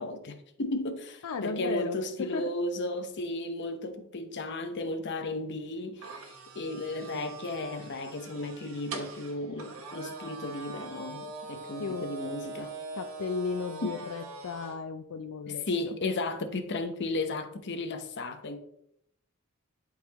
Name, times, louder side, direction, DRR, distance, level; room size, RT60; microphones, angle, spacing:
voice 1, 0.0-12.7 13.8-14.0 15.5-18.6, left 2 dB, 55° left, 0.8 m, -34 dB
voice 2, 1.2-2.5 11.8-12.1 13.0-15.7, left 5 dB, 85° left, 0.4 m, -35 dB
sound 1, 6.0-14.8, right 4 dB, 70° right, 1.2 m, -42 dB
11.0 x 4.0 x 2.9 m
head